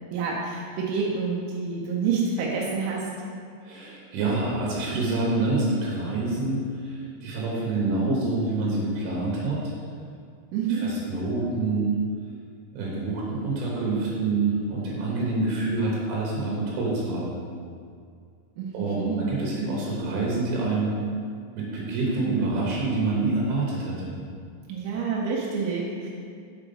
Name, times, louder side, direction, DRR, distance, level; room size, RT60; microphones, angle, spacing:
voice 1, 0.1-3.0 10.5-10.9 18.6-19.3 24.7-26.1, right 5 dB, 90° right, -3 dB, 3.5 m, -28 dB
voice 2, 3.7-9.6 10.8-12.0 12.7-17.4 18.7-21.0 21.6-24.2, right 3 dB, 75° right, -4 dB, 3.4 m, -27 dB
7.9 x 4.7 x 5.4 m, 2.3 s
omnidirectional pair, 5.8 m